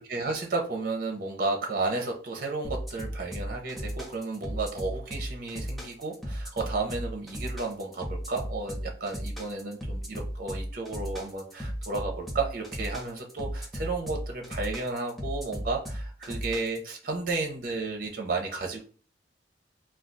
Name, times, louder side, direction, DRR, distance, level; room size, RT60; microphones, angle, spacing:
voice 1, 0.1-18.8, right 3 dB, 50° right, 2 dB, 0.6 m, -33 dB
sound 1, 2.6-16.9, equal, ahead, 0.7 m, -35 dB
2.3 x 2.3 x 3.8 m, 0.41 s
head